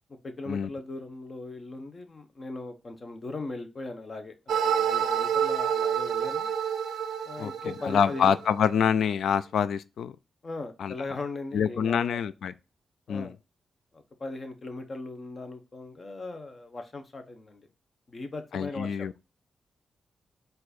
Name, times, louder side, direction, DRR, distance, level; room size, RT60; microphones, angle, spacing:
voice 1, 0.2-6.5 7.2-8.3 10.4-12.3 13.1-13.3 13.9-17.7 18.1-19.1, left 2 dB, 40° left, 0.9 m, -39 dB
sound 1, 4.5-8.5, right 8 dB, 90° right, 0.4 m, -28 dB
voice 2, 7.8-10.2 10.8-10.9 11.5-12.5 13.1-13.3 18.5-19.1, left 7 dB, 85° left, 0.3 m, -26 dB
4.6 x 2.6 x 4.1 m
cardioid pair, 85°, 0 cm